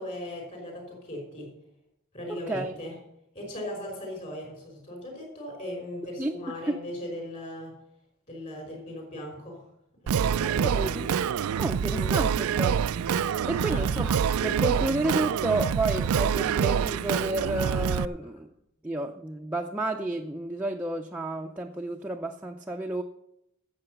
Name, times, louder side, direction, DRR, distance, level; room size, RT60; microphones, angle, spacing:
voice 1, 0.0-1.5 2.1-2.9 3.3-7.7 8.3-9.6 10.0-11.1 11.9-12.2 13.6-13.8, left 1 dB, 35° left, 1 dB, 5.5 m, -38 dB
voice 2, 2.3-2.7 6.2-6.3 6.7-6.8 10.6-11.1 11.6-12.8 13.5-14.2 14.4-18.5 18.8-23.0, right 2 dB, 5° right, 1 dB, 0.5 m, -31 dB
Singing, 10.1-18.0, right 7 dB, 85° right, 0.4 m, -26 dB
11.5 x 7.8 x 6.7 m, 0.83 s
head